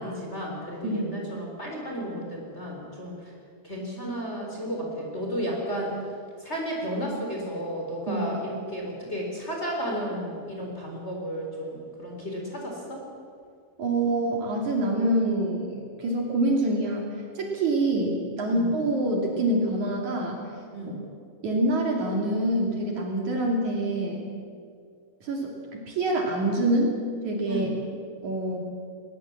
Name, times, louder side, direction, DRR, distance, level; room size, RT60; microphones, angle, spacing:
voice 1, 0.0-3.3 3.6-6.0 6.4-13.0 18.5-18.7 20.7-21.0 27.5-27.7, equal, 15° left, -1 dB, 4.0 m, -33 dB
voice 2, 0.8-1.2 8.1-8.3 13.8-17.1 17.4-20.4 21.4-24.3 25.2-27.0 27.2-27.7 28.2-28.6, right 1 dB, 55° right, 0 dB, 3.9 m, -26 dB
21.0 x 20.5 x 7.4 m, 2.3 s
omnidirectional pair, 4.3 m